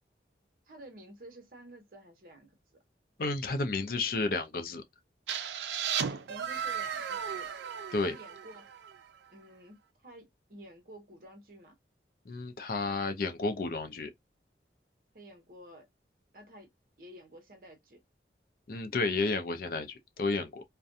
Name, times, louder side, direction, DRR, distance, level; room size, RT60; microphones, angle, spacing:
voice 1, 0.7-2.5 6.3-7.6 8.0-8.7 9.3-11.7 15.1-15.9 16.3-16.7 17.0-18.0, right 1 dB, 50° right, 0.9 m, -51 dB
voice 2, 3.2-4.8 7.9-8.1 12.3-14.1 18.7-20.6, left 3 dB, 55° left, 0.4 m, -31 dB
sound 1, 5.3-9.0, right 8 dB, 80° right, 0.4 m, -35 dB
2.4 x 2.2 x 2.6 m
head